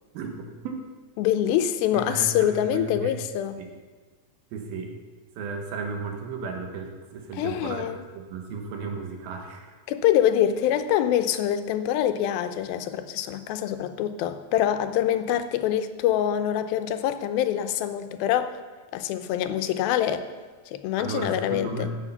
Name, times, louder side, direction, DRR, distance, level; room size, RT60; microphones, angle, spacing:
voice 1, 0.1-0.8 1.9-3.1 3.6-3.7 4.5-4.9 5.4-9.7 21.0-22.0, right 4 dB, 90° right, 3 dB, 3.1 m, -34 dB
voice 2, 1.2-3.6 7.4-8.0 9.9-18.6 18.9-20.3 20.7-21.9, left 10 dB, 85° left, 10 dB, 2.5 m, -25 dB
14.5 x 6.5 x 5.6 m, 1.4 s
omnidirectional pair, 4.1 m